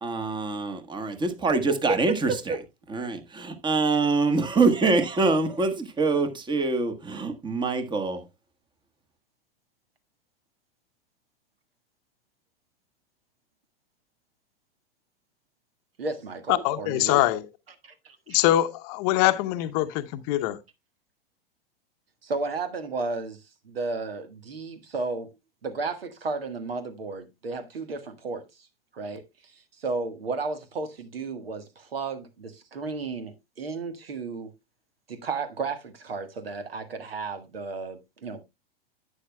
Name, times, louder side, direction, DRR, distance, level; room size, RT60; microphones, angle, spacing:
voice 1, 0.0-2.5 2.9-8.2, right 3 dB, 15° right, 1.3 m, -25 dB
voice 2, 16.0-17.2 17.8-18.4 22.2-23.4 23.6-25.3 25.6-28.4 28.9-29.2 29.8-34.5 35.1-38.4, right 3 dB, 75° right, 1.5 m, -33 dB
voice 3, 16.5-17.4 18.3-20.6, left 14 dB, 40° left, 0.8 m, -23 dB
11.0 x 8.5 x 2.2 m
figure-of-eight pair, 95°, 30 cm